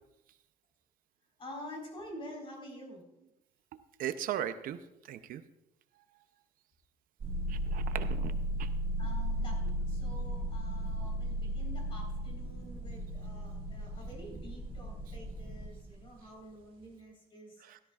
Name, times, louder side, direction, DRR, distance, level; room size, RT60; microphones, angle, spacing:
voice 1, 1.4-3.0 9.0-17.6, equal, 35° left, 0 dB, 4.1 m, -48 dB
voice 2, 4.0-4.8 5.1-5.4 7.5-8.3 8.6-8.7 17.6-17.8, right 11 dB, 65° right, 10 dB, 0.6 m, -37 dB
sound 1, 7.2-16.1, equal, 35° right, 1.5 m, -35 dB
17.0 x 13.0 x 2.4 m, 0.87 s
cardioid pair, 170°, 16 cm